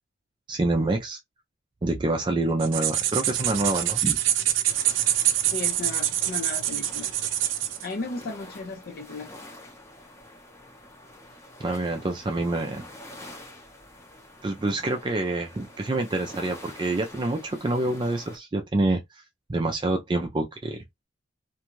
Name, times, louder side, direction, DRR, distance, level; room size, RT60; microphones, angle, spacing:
voice 1, 0.5-1.2 1.8-4.2 11.6-12.9 14.4-19.0 19.5-20.8, right 2 dB, 25° right, 0.4 m, -27 dB
sound 1, 2.6-7.9, right 11 dB, 80° right, 0.5 m, -25 dB
sound 2, 4.7-18.4, left 1 dB, 15° left, 0.7 m, -47 dB
voice 2, 5.5-7.1 7.8-9.5, left 3 dB, 50° left, 0.4 m, -35 dB
2.6 x 2.3 x 3.0 m
head